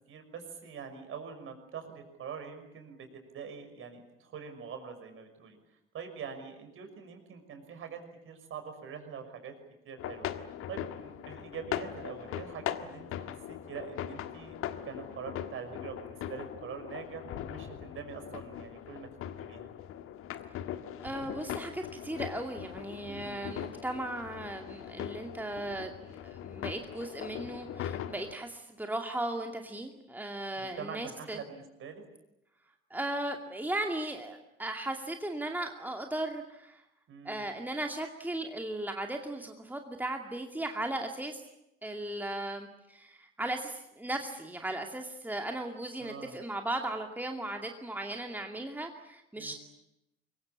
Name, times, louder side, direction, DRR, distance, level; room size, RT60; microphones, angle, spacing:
voice 1, 0.1-5.6 5.9-9.5 9.8-10.3 10.7-14.6 14.8-19.1 19.4-19.7 23.0-23.4 30.6-32.0 37.1-37.4 46.0-46.4 49.4-49.6, right 6 dB, 45° right, 6 dB, 6.1 m, -44 dB
sound 1, 10.0-28.3, left 10 dB, 50° left, 1.7 m, -40 dB
voice 2, 21.0-31.4 32.9-36.8 37.2-41.4 41.8-49.5, right 1 dB, 5° right, 3 dB, 2.4 m, -37 dB
27.0 x 23.0 x 8.6 m, 0.84 s
figure-of-eight pair, 55°, 29 cm